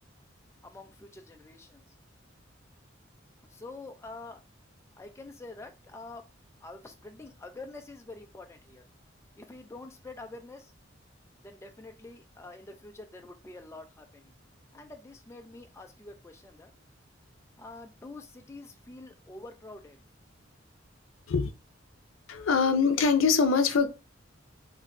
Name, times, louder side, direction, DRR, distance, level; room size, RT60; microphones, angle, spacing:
voice 1, 0.6-1.8 3.5-4.4 5.0-6.2 6.6-8.8 9.4-10.7 11.4-14.3 14.7-16.7 17.6-20.0, left 2 dB, 15° left, 0.3 m, -46 dB
voice 2, 22.3-23.9, left 5 dB, 85° left, 0.5 m, -23 dB
2.6 x 2.1 x 3.7 m
head